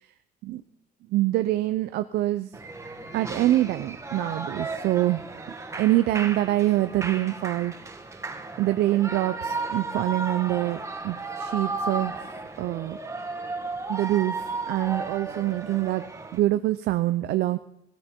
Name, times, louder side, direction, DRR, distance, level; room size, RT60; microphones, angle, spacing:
voice 1, 1.1-2.5 3.1-5.2 5.8-7.7 8.6-12.1 12.6-13.0 13.9-16.0 16.3-17.6, right 15 dB, 75° right, 11 dB, 0.7 m, -25 dB
Shout / Cheering, 2.5-16.4, right 3 dB, 15° right, 1.6 m, -34 dB
18.5 x 13.5 x 4.5 m, 0.85 s
cardioid pair, 110°, 17 cm